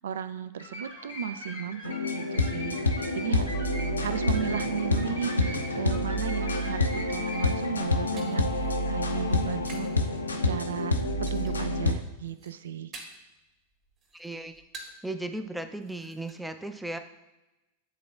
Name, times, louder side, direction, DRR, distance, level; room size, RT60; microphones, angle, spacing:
voice 1, 0.0-2.8 3.1-3.5 4.0-11.0 11.3-12.9, right 9 dB, 65° right, 13 dB, 0.3 m, -36 dB
sound 1, 0.6-7.8, equal, 85° right, 1.7 m, -41 dB
sound 2, 1.8-11.9, left 2 dB, 75° left, 0.5 m, -28 dB
sound 3, 7.5-10.0 10.3-10.8 11.3-11.8 12.1-13.4 13.7-15.1 15.4-15.5 15.8-16.3, right 2 dB, 30° right, 1.5 m, -48 dB
voice 2, 14.1-14.6 15.0-17.0, right 2 dB, 5° right, 8 dB, 0.5 m, -36 dB
10.0 x 3.8 x 2.4 m, 1.0 s
figure-of-eight pair, 90°, 0 cm